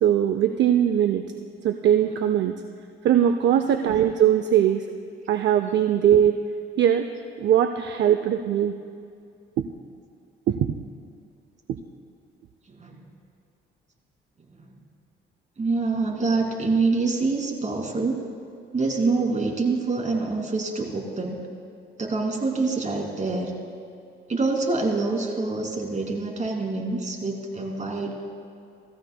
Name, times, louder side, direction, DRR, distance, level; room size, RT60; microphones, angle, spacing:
voice 1, 0.0-1.2 1.6-2.5 3.0-4.9 5.3-6.4 6.8-7.1 7.4-8.8 9.6-9.7 10.5-10.7 11.7-11.8, right 10 dB, 65° right, 7 dB, 0.5 m, -20 dB
voice 2, 12.7-13.0 14.5-14.7 15.6-18.2 18.7-21.4 22.0-23.5 24.3-28.2, right 3 dB, 35° right, 0 dB, 2.5 m, -26 dB
18.0 x 14.5 x 2.2 m, 2.4 s
cardioid pair, 90°, 20 cm